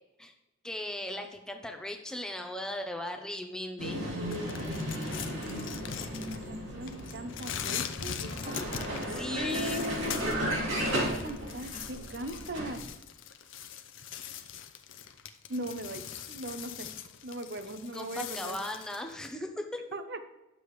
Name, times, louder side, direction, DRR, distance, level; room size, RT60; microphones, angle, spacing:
voice 1, 0.6-4.1 9.1-9.9 17.9-19.8, left 1 dB, 5° left, 4 dB, 0.7 m, -37 dB
Vehicle, 3.8-12.9, equal, 70° right, 2.5 m, -35 dB
sound 1, 4.3-6.6 6.9-10.4 10.7-19.3, left 8 dB, 65° left, 0.6 m, -41 dB
voice 2, 6.2-8.3 8.7-10.6 10.9-12.8 15.5-16.9 17.2-18.6 19.9-20.2, right 1 dB, 50° right, 9 dB, 0.7 m, -39 dB
9.9 x 6.9 x 3.1 m, 0.98 s
head